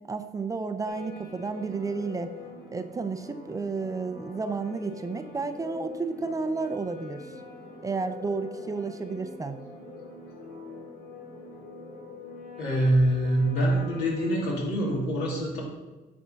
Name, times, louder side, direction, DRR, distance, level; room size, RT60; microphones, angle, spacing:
voice 1, 0.1-2.3 2.7-7.3 7.8-9.6, right 4 dB, 20° right, 9 dB, 0.5 m, -32 dB
sound 1, 0.9-14.5, left 3 dB, 55° left, 2.4 m, -44 dB
voice 2, 12.6-15.6, right 1 dB, 80° left, -3 dB, 2.6 m, -25 dB
8.8 x 3.5 x 5.7 m, 1.2 s
cardioid pair, 110°, 17 cm